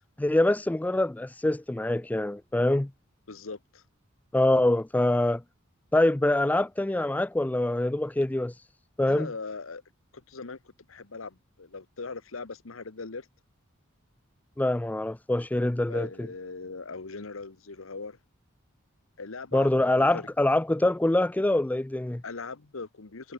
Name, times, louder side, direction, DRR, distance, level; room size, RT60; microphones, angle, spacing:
voice 1, 0.2-2.9 4.3-5.4 5.9-8.5 9.0-9.3 14.6-16.3 19.5-22.2, left 1 dB, 10° left, 0.4 m, -25 dB
voice 2, 3.3-3.8 9.1-9.8 10.1-10.6 10.9-13.3 15.9-18.2 19.2-20.3 22.2-23.3, left 4 dB, 70° left, 1.2 m, -40 dB
head